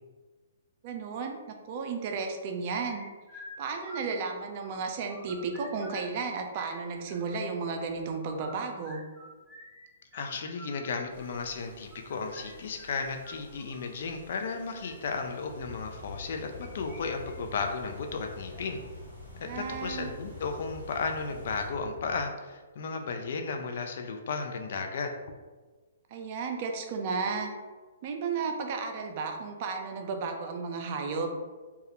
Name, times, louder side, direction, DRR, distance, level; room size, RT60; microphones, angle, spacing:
voice 1, 0.8-3.0 3.6-9.0 19.4-20.1 26.1-27.5 28.0-31.3, right 4 dB, 45° right, 4 dB, 0.4 m, -33 dB
sound 1, 2.7-4.6 4.9-6.2 6.5-7.5 8.2-13.9 14.6-14.9 16.2-17.0 17.3-17.4 17.8-17.9 18.5-18.9, equal, 10° left, 0.6 m, -49 dB
voice 2, 10.1-18.8 19.4-25.1, left 4 dB, 60° left, 4 dB, 0.3 m, -34 dB
sound 2, 11.1-21.7, equal, 85° left, 1.1 m, -54 dB
sound 3, 15.5-22.2, left 2 dB, 30° left, 0.9 m, -46 dB
2.3 x 2.0 x 2.8 m, 1.3 s
hypercardioid pair, 130°, 0 cm